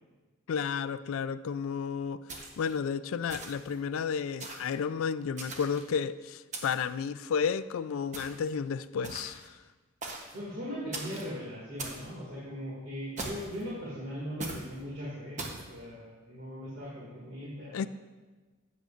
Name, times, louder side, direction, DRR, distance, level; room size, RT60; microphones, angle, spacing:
voice 1, 0.5-9.4 17.7-17.9, left 6 dB, 75° left, 0.3 m, -32 dB
sound 1, 2.3-2.8 3.3-3.7 4.4-4.8 5.4-5.9 6.5-6.9 8.1-8.5 9.0-9.5 10.0-10.4 10.9-11.3 11.8-12.1 13.2-13.6 14.4-14.7 15.4-15.7, right 2 dB, 35° right, 0.9 m, -40 dB
voice 2, 10.3-15.4 15.7-17.9, equal, 50° right, 2.1 m, -39 dB
13.0 x 7.9 x 2.5 m
head